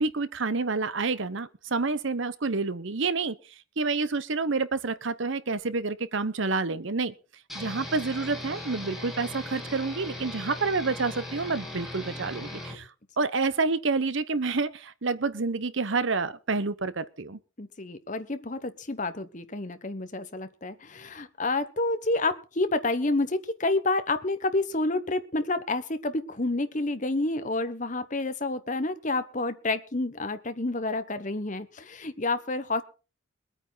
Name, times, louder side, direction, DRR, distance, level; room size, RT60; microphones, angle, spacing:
voice 1, 0.0-3.4 3.8-7.1 7.5-12.9 13.2-17.4, right 4 dB, 65° right, 15 dB, 0.9 m, -28 dB
sound 1, 7.5-12.8, left 1 dB, ahead, 3.2 m, -38 dB
voice 2, 17.6-32.8, left 2 dB, 35° left, 11 dB, 1.1 m, -29 dB
22.5 x 9.0 x 4.0 m, 0.34 s
head